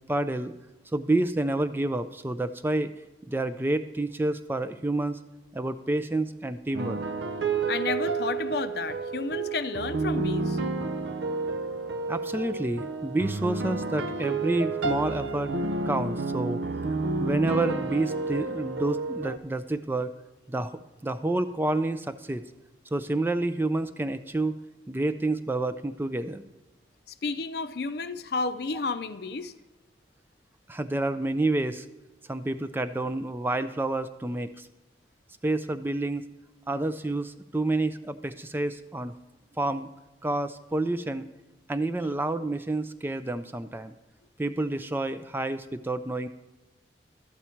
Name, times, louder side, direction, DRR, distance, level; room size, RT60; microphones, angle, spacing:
voice 1, 0.1-0.5 0.9-2.9 3.3-5.2 5.5-7.0 12.1-15.5 15.9-16.6 17.2-20.1 20.5-22.4 22.9-24.6 24.9-26.4 30.7-31.9 32.3-34.7 35.4-36.3 36.7-39.1 39.6-39.9 40.2-41.3 41.7-43.9 44.4-46.3, right 2 dB, 10° right, 11 dB, 0.3 m, -29 dB
sound 1, 6.7-19.4, right 3 dB, 85° right, 0.5 m, -30 dB
voice 2, 7.7-10.6 27.2-29.5, left 4 dB, 60° left, 11 dB, 0.5 m, -31 dB
12.5 x 8.4 x 4.4 m, 1.1 s
head